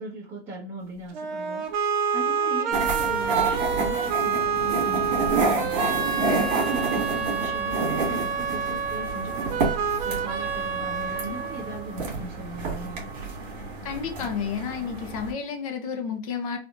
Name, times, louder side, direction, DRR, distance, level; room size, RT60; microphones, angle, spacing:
voice 1, 0.0-13.0, right 1 dB, 20° right, 1.0 m, -38 dB
sound 1, 1.1-12.1, right 5 dB, 45° right, 0.4 m, -28 dB
sound 2, 2.7-15.3, right 3 dB, 60° right, 1.7 m, -29 dB
voice 2, 13.8-16.6, left 6 dB, 30° left, 0.4 m, -31 dB
3.6 x 2.3 x 2.5 m
supercardioid pair, 155°, 37 cm